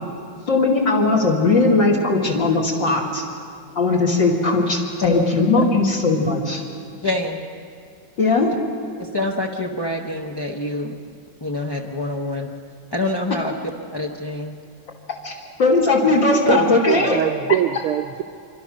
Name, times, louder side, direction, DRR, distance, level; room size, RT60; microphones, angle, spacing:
voice 1, 0.5-3.2 3.7-6.6 8.2-8.6 15.2-15.3 15.6-17.2, left 3 dB, 55° left, -2 dB, 3.2 m, -18 dB
voice 2, 7.0-7.4 9.0-10.9 11.4-12.5 12.9-13.5 13.9-14.6 16.5-16.6, left 1 dB, 20° left, 0 dB, 0.6 m, -25 dB
voice 3, 16.1-18.2, right 11 dB, 80° right, 11 dB, 1.8 m, -24 dB
27.0 x 24.5 x 6.5 m, 2.4 s
omnidirectional pair, 2.4 m